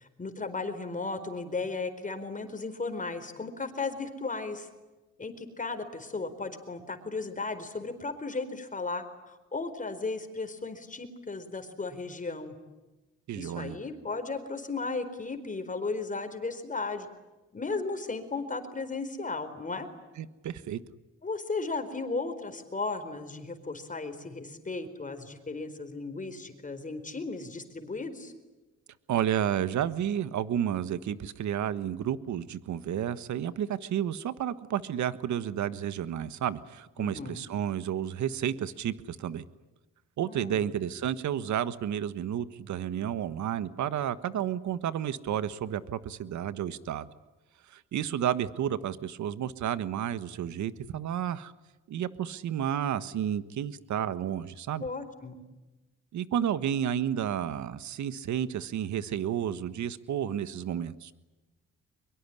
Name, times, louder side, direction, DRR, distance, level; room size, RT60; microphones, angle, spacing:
voice 1, 0.0-4.7 5.2-12.5 13.3-17.1 17.5-19.9 21.2-28.3 37.0-37.4 40.2-40.6 54.8-55.4, left 3 dB, 25° left, 9 dB, 4.5 m, -35 dB
voice 2, 13.3-13.8 20.2-20.8 29.1-39.4 40.2-47.1 47.7-51.5 51.9-54.8 56.1-61.1, right 10 dB, 70° right, 14 dB, 1.5 m, -31 dB
23.5 x 23.0 x 9.9 m, 1.1 s
cardioid pair, 90°, 30 cm